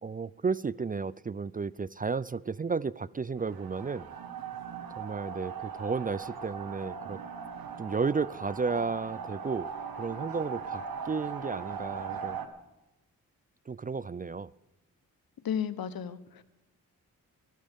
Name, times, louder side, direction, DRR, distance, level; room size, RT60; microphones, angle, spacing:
voice 1, 0.0-4.1 5.0-7.2 7.8-9.7 10.0-12.4 13.7-14.5, right 4 dB, 25° right, 20 dB, 0.4 m, -33 dB
sound 1, 3.4-12.5, right 6 dB, 75° right, 1.6 m, -39 dB
voice 2, 15.4-16.4, left 8 dB, 75° left, 14 dB, 1.0 m, -33 dB
22.5 x 13.0 x 3.6 m, 0.99 s
cardioid pair, 55°, 36 cm